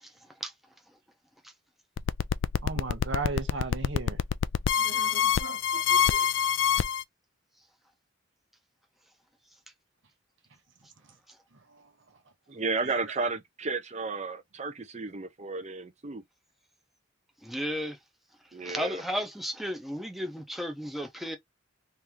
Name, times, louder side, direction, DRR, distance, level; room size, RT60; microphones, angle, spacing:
sound 1, 2.0-7.0, left 8 dB, 85° left, 0.3 m, -25 dB
voice 1, 2.6-4.2 4.8-6.3 11.7-11.9 12.8-13.0, right 3 dB, 85° right, 1.0 m, -37 dB
voice 2, 12.5-16.2 18.5-19.0, right 3 dB, 40° right, 0.7 m, -33 dB
voice 3, 17.4-18.0 18.6-21.4, equal, ahead, 0.7 m, -34 dB
3.1 x 2.7 x 3.5 m
head